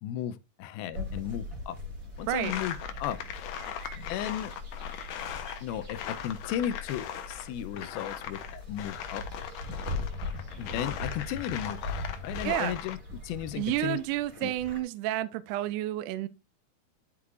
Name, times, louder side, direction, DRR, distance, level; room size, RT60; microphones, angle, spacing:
voice 1, 0.0-1.8 2.2-3.2 3.9-4.5 5.6-9.2 10.6-11.9 12.2-14.0 14.4-14.5, left 11 dB, 85° left, 2.6 m, -35 dB
sound 1, 0.9-14.8, left 2 dB, 30° right, 2.0 m, -41 dB
sound 2, 1.7-12.2, left 4 dB, 45° right, 1.3 m, -47 dB
sound 3, 2.3-7.5 7.8-13.0, left 9 dB, 70° left, 2.2 m, -39 dB
voice 2, 12.4-12.8 13.6-16.3, right 14 dB, 80° right, 2.0 m, -30 dB
11.5 x 4.7 x 2.5 m
omnidirectional pair, 4.2 m